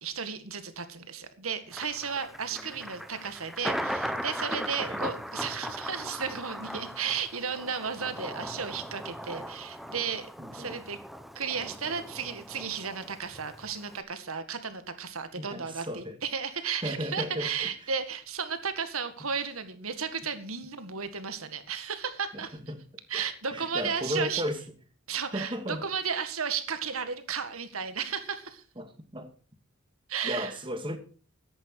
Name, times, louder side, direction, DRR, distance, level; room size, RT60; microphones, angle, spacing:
voice 1, 0.0-11.0 11.4-22.6 23.1-24.4 25.1-28.6 30.1-30.5, right 6 dB, 85° right, 10 dB, 1.9 m, -34 dB
Thunder, 1.7-14.0, equal, ahead, 0.9 m, -38 dB
voice 2, 2.5-2.9 4.8-5.0 10.4-10.7 15.4-16.2 16.8-17.7 22.3-22.8 23.1-23.2 23.5-24.6 25.3-25.9 28.8-29.3 30.2-31.0, equal, 25° right, 8 dB, 2.1 m, -35 dB
14.0 x 11.0 x 4.7 m, 0.38 s
head